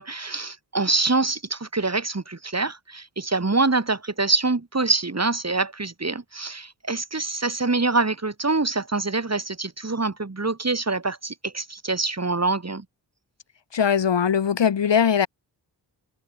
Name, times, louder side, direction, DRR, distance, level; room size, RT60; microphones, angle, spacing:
voice 1, 0.0-12.8, right 3 dB, 35° right, 7.8 m, -25 dB
voice 2, 13.7-15.3, left 7 dB, 80° left, 3.4 m, -20 dB
cardioid pair, 55°, 43 cm